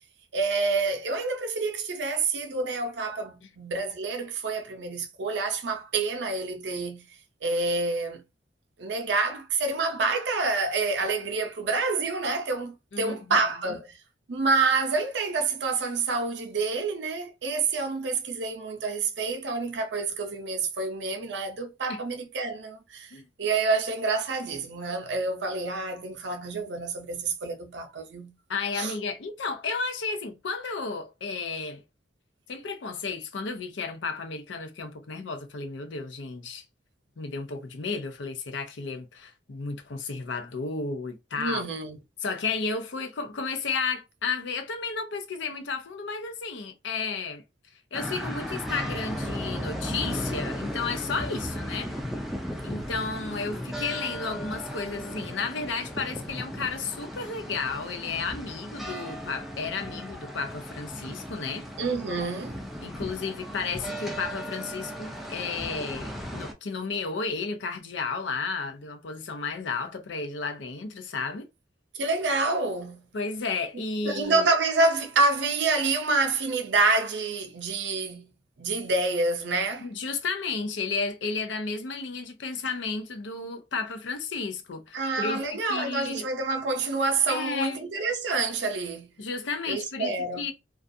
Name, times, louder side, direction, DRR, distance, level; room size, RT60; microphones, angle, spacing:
voice 1, 0.3-7.0 7.4-8.2 8.8-14.0 14.3-28.3 28.7-28.9 41.4-42.0 61.8-62.6 71.9-73.1 74.0-78.3 78.6-79.9 84.9-89.1 89.7-90.5, right 3 dB, 70° right, 0.5 m, -28 dB
voice 2, 12.9-13.5 21.9-22.0 23.1-23.2 28.5-31.8 32.5-36.6 37.2-41.6 42.2-47.4 47.9-52.0 52.6-61.7 62.8-71.5 73.1-74.5 79.8-85.4 85.7-86.3 87.3-87.8 89.2-90.5, left 4 dB, 80° left, 0.6 m, -33 dB
sound 1, 47.9-66.5, equal, ahead, 0.3 m, -36 dB
2.3 x 2.3 x 2.6 m
head